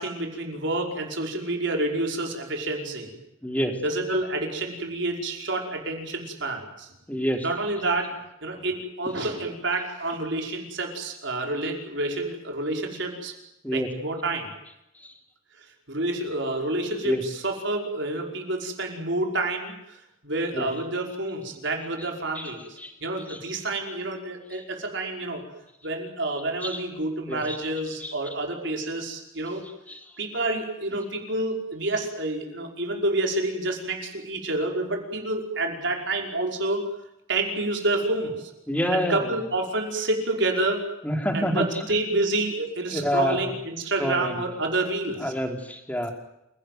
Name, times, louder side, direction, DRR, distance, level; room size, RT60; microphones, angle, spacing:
voice 1, 0.0-3.1 3.8-6.9 7.4-8.1 8.4-13.3 13.7-14.5 15.9-25.4 25.8-29.6 30.2-36.9 37.3-38.5 38.9-40.8 41.3-45.3, right 2 dB, 60° right, 2 dB, 5.3 m, -28 dB
voice 2, 3.4-3.8 7.1-7.5 13.6-13.9 15.0-15.1 17.0-17.2 20.5-20.7 22.4-22.5 22.8-22.9 23.3-23.4 24.5-24.6 26.6-26.8 27.3-27.6 28.0-28.1 29.9-30.0 38.7-39.3 41.0-41.8 42.9-43.5 44.0-44.4 45.2-46.1, equal, 10° left, 4 dB, 3.7 m, -27 dB
28.5 x 18.0 x 9.4 m, 0.85 s
head